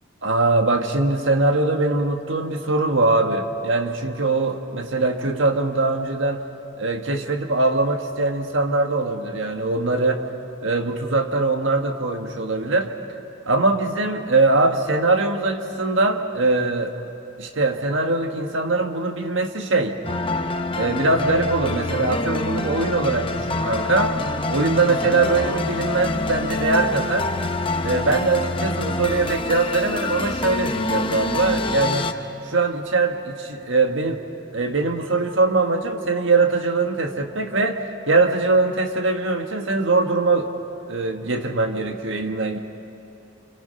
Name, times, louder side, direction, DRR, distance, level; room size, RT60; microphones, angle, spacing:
voice 1, 0.2-6.4 6.8-10.2 10.6-12.9 13.5-16.9 17.4-20.0 20.7-24.2 24.5-27.3 27.8-32.1 32.4-34.2 34.5-40.5 40.9-42.6, right 3 dB, 75° right, 5 dB, 1.5 m, -22 dB
sound 1, 20.0-32.1, left 2 dB, 25° left, 0.9 m, -26 dB
29.0 x 27.0 x 5.7 m, 2.9 s
head